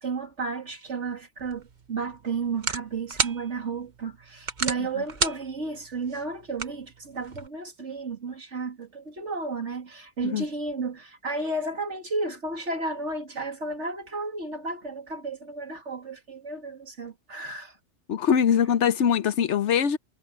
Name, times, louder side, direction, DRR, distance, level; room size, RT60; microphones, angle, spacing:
voice 1, 0.0-17.8, right 3 dB, 70° right, 2.8 m, -33 dB
sound 1, 1.4-7.5, right 4 dB, 40° right, 1.3 m, -34 dB
voice 2, 18.1-20.0, left 8 dB, 75° left, 1.1 m, -22 dB
omnidirectional pair, 1.2 m